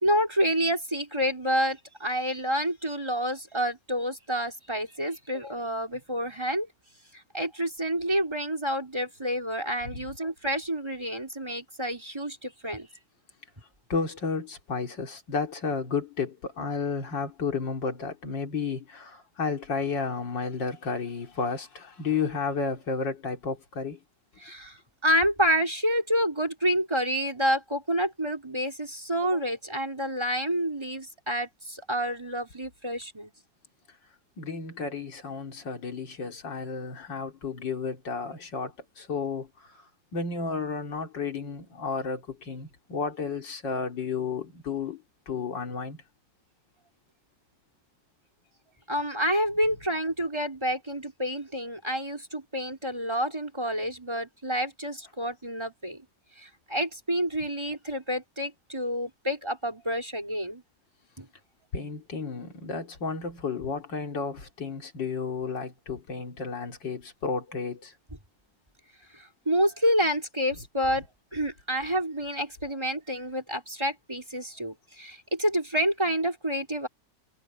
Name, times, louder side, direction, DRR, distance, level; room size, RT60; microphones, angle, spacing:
voice 1, 0.0-6.7 7.3-12.9 24.4-33.3 48.9-56.0 56.4-60.6 61.2-61.3 69.1-71.1 71.3-76.9, equal, 15° right, 4.2 m, -28 dB
voice 2, 13.9-24.0 34.4-46.0 61.7-67.9, left 5 dB, 75° left, 3.4 m, -32 dB
omnidirectional pair, 2.0 m